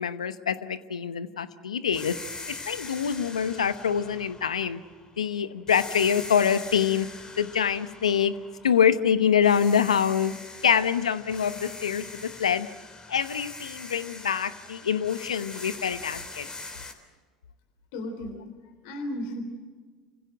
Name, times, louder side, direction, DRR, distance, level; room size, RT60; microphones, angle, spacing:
voice 1, 0.0-2.2 2.5-4.8 5.2-7.1 7.4-8.3 8.6-10.3 10.6-12.7 13.1-16.5, left 8 dB, 90° left, 13 dB, 1.0 m, -25 dB
sound 1, 1.9-5.2 5.7-9.0 9.4-16.9, left 3 dB, 20° left, 3.7 m, -42 dB
voice 2, 17.9-19.4, left 1 dB, 65° left, 7 dB, 3.6 m, -35 dB
28.0 x 16.0 x 9.2 m, 1.4 s
hypercardioid pair, 80°, 3 cm